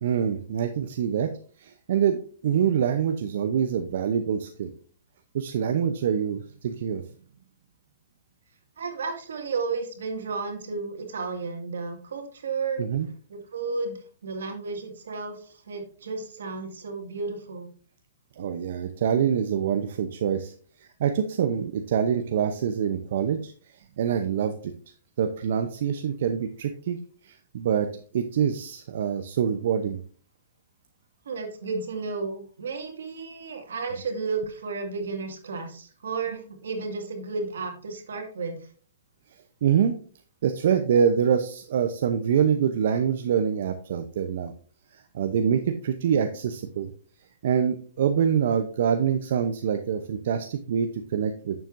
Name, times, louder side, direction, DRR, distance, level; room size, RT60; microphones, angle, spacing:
voice 1, 0.0-1.3 1.6-4.7 5.3-7.0 12.8-13.1 18.4-20.5 21.0-23.5 24.0-24.7 25.2-27.0 27.2-27.9 28.1-30.0 39.6-39.9 40.4-44.5 44.9-46.9 47.4-51.6, right 8 dB, 60° right, 6 dB, 0.7 m, -25 dB
voice 2, 8.8-12.8 13.3-17.7 31.3-38.6, right 4 dB, 85° right, 4 dB, 2.0 m, -33 dB
9.0 x 7.1 x 2.6 m, 0.43 s
hypercardioid pair, 150°, 0 cm